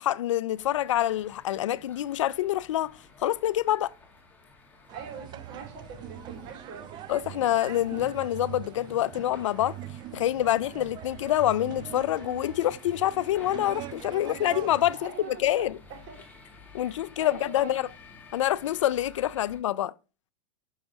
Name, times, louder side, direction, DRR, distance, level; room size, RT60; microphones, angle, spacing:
voice 1, 0.0-3.0 3.2-3.9 7.1-9.8 10.1-15.8 16.7-17.8 18.3-19.9, left 13 dB, 90° left, 0.4 m, -26 dB
sound 1, 0.5-19.6, left 3 dB, 10° left, 2.0 m, -53 dB
sound 2, 4.9-14.9, right 12 dB, 30° right, 0.5 m, -42 dB
voice 2, 4.9-7.0 14.9-16.2 16.8-17.9 19.4-19.5, right 6 dB, 55° right, 3.9 m, -44 dB
7.1 x 6.2 x 3.5 m
supercardioid pair, 130°, 15 cm